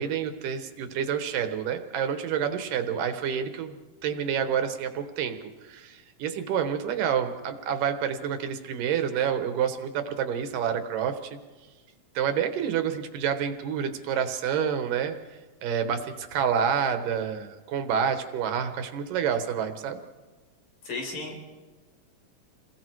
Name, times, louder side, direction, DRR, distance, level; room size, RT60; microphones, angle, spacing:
voice 1, 0.0-3.7 4.0-5.4 5.6-11.4 12.1-15.2 15.6-20.0, right 8 dB, 80° right, 8 dB, 3.0 m, -28 dB
voice 2, 20.8-21.4, left 3 dB, 75° left, 0 dB, 6.4 m, -34 dB
28.5 x 21.5 x 4.7 m, 1.3 s
omnidirectional pair, 3.8 m